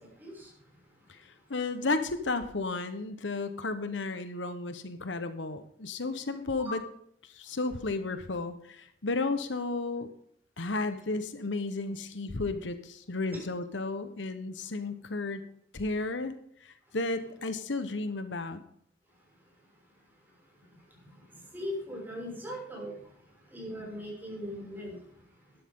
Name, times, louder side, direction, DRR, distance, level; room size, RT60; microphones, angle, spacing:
voice 1, 1.5-6.8 7.3-10.1 10.6-15.4 15.7-16.3 16.6-18.6, left 3 dB, 75° left, 10 dB, 1.1 m, -33 dB
voice 2, 21.5-22.9 23.5-25.0, left 1 dB, 10° right, -3 dB, 6.1 m, -38 dB
12.5 x 11.5 x 3.7 m, 0.68 s
head